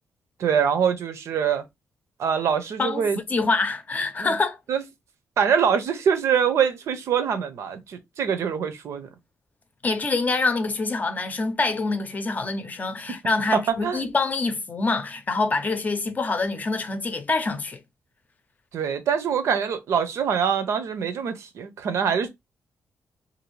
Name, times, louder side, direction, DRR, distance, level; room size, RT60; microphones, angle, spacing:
voice 1, 0.4-1.6 2.2-3.2 4.2-4.3 4.7-4.8 5.4-9.1 13.5-14.0 18.7-22.3, right 7 dB, 70° right, 0.6 m, -24 dB
voice 2, 2.8-4.6 9.8-17.8, left 3 dB, 35° left, 0.6 m, -25 dB
2.6 x 2.6 x 3.1 m
cardioid pair, 100°, 5 cm